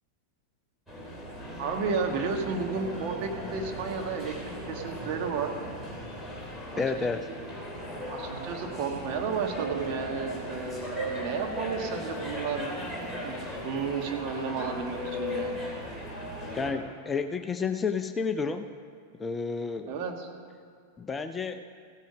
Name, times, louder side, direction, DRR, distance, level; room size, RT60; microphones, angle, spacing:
sound 1, 0.9-16.7, left 1 dB, ahead, 3.0 m, -38 dB
voice 1, 1.6-5.5 6.7-6.9 8.1-12.7 13.2-15.6 19.9-20.3, right 5 dB, 40° right, 2 dB, 1.7 m, -32 dB
voice 2, 6.7-7.3 16.5-18.7 19.2-19.9 21.0-21.7, left 5 dB, 15° left, 8 dB, 0.5 m, -30 dB
sound 2, 8.3-13.7 14.1-14.2, right 5 dB, 70° right, 0.5 m, -41 dB
15.5 x 9.3 x 5.2 m, 2.2 s
figure-of-eight pair, 90°, 0 cm